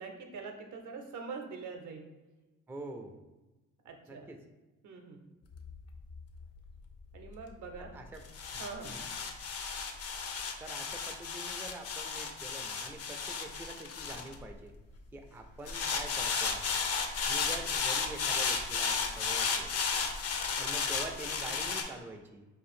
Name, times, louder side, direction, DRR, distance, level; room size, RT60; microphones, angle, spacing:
voice 1, 0.0-2.1 3.8-4.3 4.8-5.2 7.1-7.9 8.6-9.0, right 4 dB, 75° right, 4 dB, 0.7 m, -44 dB
voice 2, 2.7-3.2 4.1-4.4 7.8-8.2 8.5-9.2 10.6-14.7 15.1-16.8 17.2-19.8 20.6-22.5, right 2 dB, 10° right, 4 dB, 0.3 m, -45 dB
sound 1, 5.5-15.0 15.7-21.8, left 5 dB, 55° left, 0.5 m, -34 dB
2.8 x 2.5 x 4.2 m, 1.1 s
cardioid pair, 90°, 30 cm